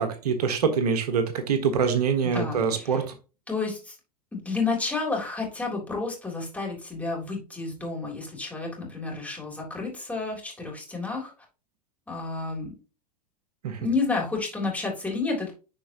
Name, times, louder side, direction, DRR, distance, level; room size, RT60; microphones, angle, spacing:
voice 1, 0.0-3.1 13.6-13.9, right 6 dB, 70° right, 7 dB, 1.5 m, -25 dB
voice 2, 2.2-2.9 3.5-4.0 4.3-11.3 12.1-12.7 13.8-15.6, left 3 dB, 5° left, -1 dB, 3.5 m, -30 dB
10.5 x 4.6 x 3.0 m, 0.33 s
hypercardioid pair, 95°, 20 cm